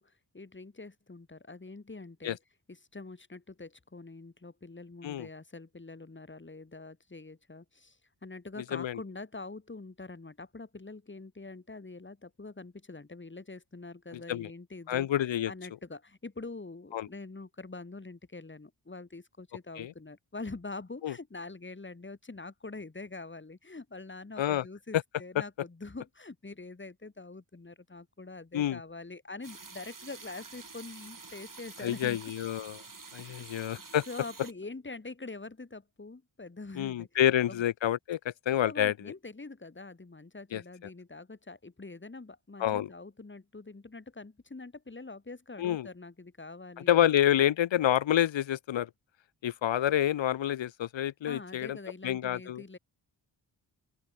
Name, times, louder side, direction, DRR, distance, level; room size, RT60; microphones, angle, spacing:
voice 1, 0.0-2.4 2.7-15.1 15.5-32.2 33.1-33.7 34.1-37.1 37.5-37.6 38.6-47.1 51.2-52.8, left 3 dB, 25° left, 2.0 m, -45 dB
voice 2, 14.9-15.5 16.9-17.1 19.8-19.9 21.0-21.1 24.4-24.6 28.5-28.8 31.8-32.8 33.1-34.0 36.8-38.9 40.5-40.6 42.6-42.9 45.6-45.9 46.9-48.9 49.4-51.8 52.0-52.6, left 11 dB, 80° left, 0.8 m, -28 dB
sound 1, 29.4-34.5, right 4 dB, 45° right, 4.4 m, -48 dB
open air
cardioid pair, 50°, 45 cm